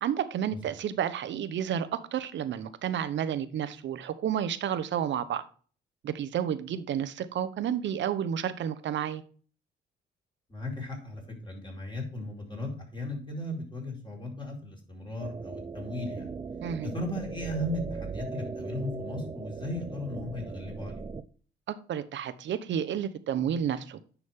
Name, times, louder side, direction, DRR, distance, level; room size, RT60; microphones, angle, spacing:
voice 1, 0.0-5.4 6.0-9.2 16.6-16.9 21.7-24.0, right 9 dB, 65° right, 0.9 m, -31 dB
voice 2, 10.5-16.3 16.8-21.0, left 1 dB, 25° left, 4.4 m, -36 dB
sound 1, 15.2-21.2, right 4 dB, 25° right, 0.6 m, -39 dB
9.6 x 6.2 x 3.6 m
cardioid pair, 90°, 20 cm